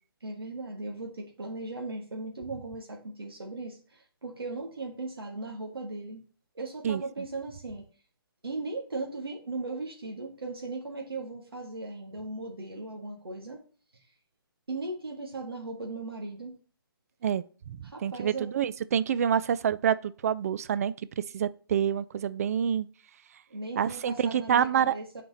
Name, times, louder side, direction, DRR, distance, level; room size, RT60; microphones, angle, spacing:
voice 1, 0.2-6.2 6.6-7.8 8.4-13.6 14.7-16.6 17.8-18.5 23.5-25.2, right 2 dB, 75° right, 1.7 m, -38 dB
voice 2, 17.2-20.9 21.3-22.9 23.8-25.2, right 8 dB, 40° right, 0.4 m, -27 dB
6.2 x 4.6 x 3.9 m
figure-of-eight pair, 145°, 13 cm